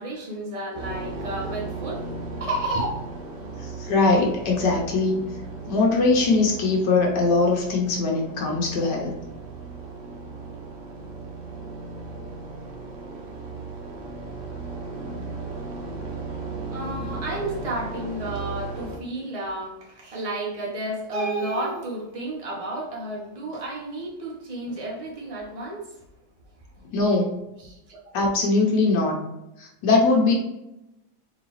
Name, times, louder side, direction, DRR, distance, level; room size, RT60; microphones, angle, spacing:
voice 1, 0.0-2.1 2.4-3.0 16.7-25.8 27.6-28.0, right 1 dB, 30° right, -2 dB, 0.7 m, -31 dB
sound 1, 0.7-19.0, right 3 dB, 60° right, 0.8 m, -36 dB
voice 2, 3.6-5.2 5.7-9.1 15.1-15.3 26.9-27.4 28.1-29.2 29.6-30.3, left 3 dB, 75° left, 0 dB, 1.4 m, -21 dB
3.8 x 3.2 x 3.0 m, 0.91 s
omnidirectional pair, 1.9 m